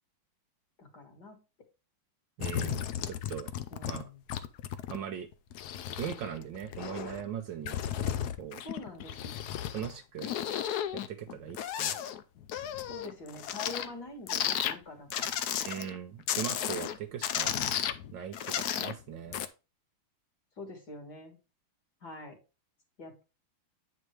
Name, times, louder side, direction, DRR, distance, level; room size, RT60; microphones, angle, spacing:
voice 1, 0.8-1.4 3.7-4.2 8.6-9.5 12.8-15.4 20.6-21.4 22.0-22.4 23.0-23.2, left 2 dB, 50° left, 3 dB, 2.3 m, -45 dB
sound 1, 2.4-4.0 4.3-5.0 5.3-7.3 7.7-9.9 10.2-13.9 14.3-14.8 15.1-16.0 16.3-17.0 17.2-19.0 19.3-19.5, left 10 dB, 85° left, 0.8 m, -34 dB
voice 2, 2.4-3.5 3.9-4.1 4.9-5.3 6.0-7.8 8.4-8.6 9.7-10.3 10.9-12.0 15.7-17.6 18.1-19.4, right 9 dB, 65° right, 7 dB, 1.3 m, -39 dB
8.7 x 4.6 x 3.2 m, 0.30 s
omnidirectional pair, 2.4 m